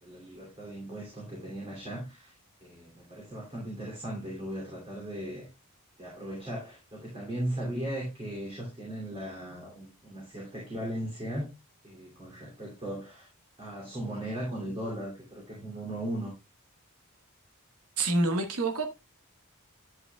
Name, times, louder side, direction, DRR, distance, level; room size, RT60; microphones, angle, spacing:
voice 1, 0.0-2.3 2.6-5.5 6.0-11.5 11.8-13.3 13.6-16.4, right 1 dB, 25° right, 2.7 m, -37 dB
voice 2, 18.0-18.9, right 2 dB, 85° right, 1.3 m, -27 dB
10.5 x 7.9 x 2.3 m
head